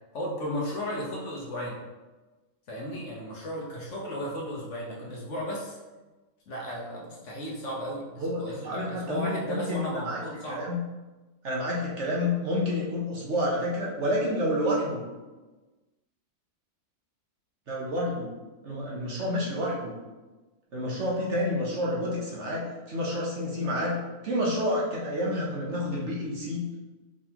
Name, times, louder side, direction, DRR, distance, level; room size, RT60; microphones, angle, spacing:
voice 1, 0.1-1.8 2.7-5.8 6.5-10.6, equal, 55° left, -3 dB, 1.1 m, -35 dB
voice 2, 8.2-10.8 11.4-15.0 17.7-18.3 18.6-20.0 20.7-24.0 24.2-26.6, left 1 dB, 55° right, -4 dB, 1.1 m, -29 dB
4.8 x 3.9 x 2.9 m, 1.2 s
omnidirectional pair, 1.6 m